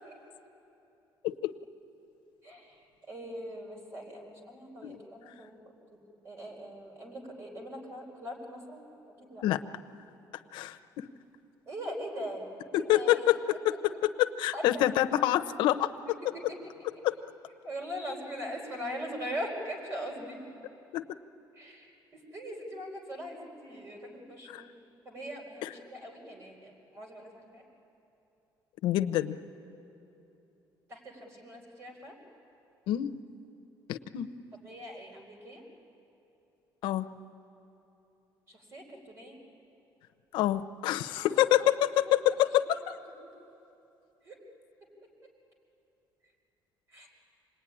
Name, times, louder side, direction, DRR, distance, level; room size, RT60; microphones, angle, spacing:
voice 1, 2.4-2.8 3.1-5.7 6.2-8.9 9.2-9.4 11.7-12.4 12.8-13.2 14.5-14.6 17.6-20.4 21.6-21.9 22.1-24.7 25.0-27.6 30.9-32.2 34.6-35.6 38.5-39.4 41.2-41.7 44.2-44.4 46.9-47.1, equal, 35° right, 0 dB, 4.5 m, -41 dB
voice 2, 10.5-11.1 12.7-16.2 17.0-17.2 20.9-21.1 24.5-24.6 25.6-25.7 28.8-29.4 32.9-33.1 33.9-34.3 36.8-37.1 40.3-43.0, left 13 dB, 90° left, 9 dB, 0.8 m, -27 dB
26.5 x 20.0 x 9.9 m, 2.9 s
cardioid pair, 180°, 8 cm